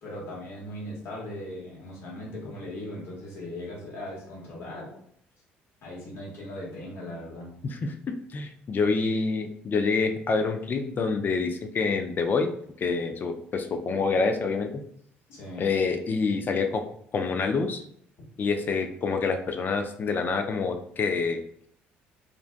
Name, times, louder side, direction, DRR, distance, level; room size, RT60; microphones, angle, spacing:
voice 1, 0.0-4.9 5.8-7.5 15.3-15.7, left 1 dB, 55° left, -4 dB, 1.0 m, -38 dB
voice 2, 7.6-12.5 12.8-14.7 15.6-16.8 17.1-17.8 18.4-21.4, left 4 dB, 40° left, 6 dB, 0.4 m, -27 dB
2.5 x 2.2 x 2.5 m, 0.68 s
supercardioid pair, 70°, 5 cm